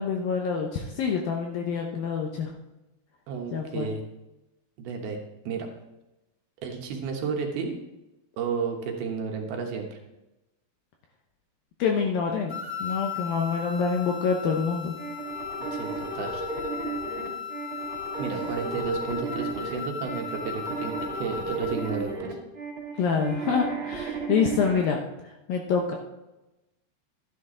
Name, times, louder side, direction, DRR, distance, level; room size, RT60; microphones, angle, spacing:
voice 1, 0.0-2.5 3.5-3.9 11.8-12.5 12.8-14.9 23.0-25.0 25.5-26.0, left 6 dB, 75° left, 2 dB, 2.2 m, -26 dB
voice 2, 3.3-4.0 4.8-5.2 5.5-5.7 6.6-7.7 8.4-10.0 15.7-16.4 18.2-22.4, right 5 dB, 70° right, 2 dB, 2.9 m, -32 dB
sound 1, 12.5-22.1, left 7 dB, 15° left, 1.1 m, -37 dB
sound 2, 15.0-24.8, right 3 dB, 35° right, 2.6 m, -34 dB
12.5 x 10.0 x 3.8 m, 0.99 s
omnidirectional pair, 5.1 m